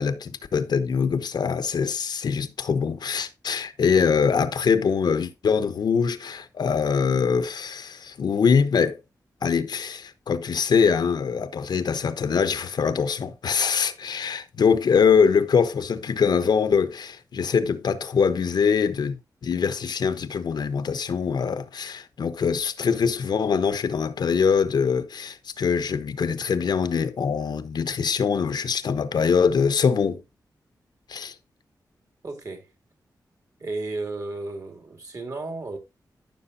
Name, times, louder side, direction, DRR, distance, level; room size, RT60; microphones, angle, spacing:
voice 1, 0.0-9.0 9.4-19.2 19.4-30.2 31.1-31.3, left 6 dB, 80° left, 1.0 m, -23 dB
voice 2, 32.2-32.7 33.6-35.8, right 2 dB, 50° right, 2.8 m, -33 dB
14.5 x 6.2 x 2.7 m
wide cardioid pair, 115°, 7 cm